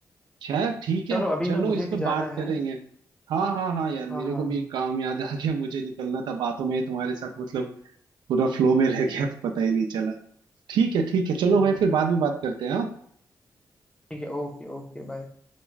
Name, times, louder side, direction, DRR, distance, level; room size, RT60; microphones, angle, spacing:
voice 1, 0.4-2.8 3.3-7.7 8.3-10.1 10.7-12.9, right 5 dB, 85° right, 4 dB, 0.4 m, -25 dB
voice 2, 1.1-2.5 4.1-4.6 11.4-11.8 14.1-15.3, left 1 dB, 10° left, 2 dB, 0.7 m, -32 dB
2.4 x 2.3 x 3.1 m, 0.63 s
cardioid pair, 60°, 7 cm